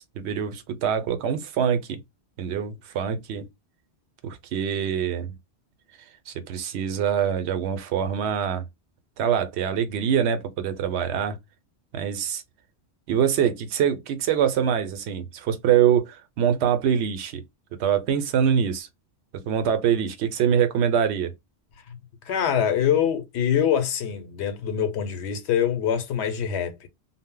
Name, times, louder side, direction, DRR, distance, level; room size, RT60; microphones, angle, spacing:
voice 1, 0.2-2.0 2.4-3.5 4.2-5.3 6.3-8.7 9.2-11.4 11.9-12.4 13.1-17.4 17.8-18.9 19.3-21.3, right 8 dB, 90° right, 0.8 m, -24 dB
voice 2, 22.2-26.9, left 8 dB, 85° left, 0.9 m, -24 dB
2.1 x 2.0 x 3.6 m
omnidirectional pair, 1.1 m